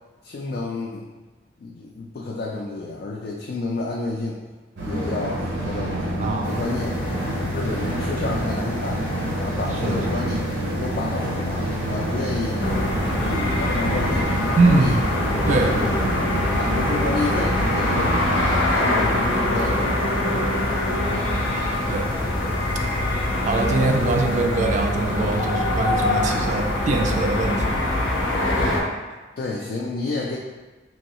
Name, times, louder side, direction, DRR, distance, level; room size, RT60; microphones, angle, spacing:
voice 1, 0.2-1.1 1.6-4.4 4.8-7.0 7.5-10.5 10.8-12.7 13.2-15.0 15.5-16.0 16.5-18.2 18.8-21.3 29.4-30.4, left 3 dB, 50° left, -2 dB, 0.3 m, -30 dB
sound 1, 4.8-18.6, right 1 dB, 75° right, 0.7 m, -27 dB
voice 2, 6.2-6.5 9.8-10.0 14.6-15.0 15.5-16.0 21.9-22.3 23.0-27.9, right 3 dB, 40° right, 3 dB, 0.3 m, -23 dB
sound 2, 6.4-24.4, left 2 dB, 10° left, 0.6 m, -35 dB
sound 3, 12.6-28.8, left 1 dB, 90° left, 0.6 m, -23 dB
3.1 x 2.6 x 3.0 m, 1.2 s
head